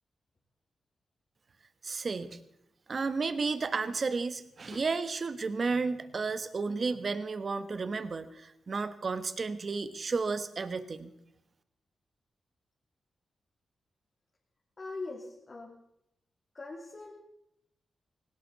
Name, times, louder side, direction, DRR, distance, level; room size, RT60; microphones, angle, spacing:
voice 1, 1.8-2.4 2.9-11.1, right 4 dB, 50° right, 12 dB, 1.3 m, -32 dB
voice 2, 14.8-15.7 16.5-17.1, left 3 dB, 45° left, -2 dB, 2.8 m, -41 dB
18.5 x 17.5 x 4.1 m, 0.79 s
cardioid pair, 50°, 0 cm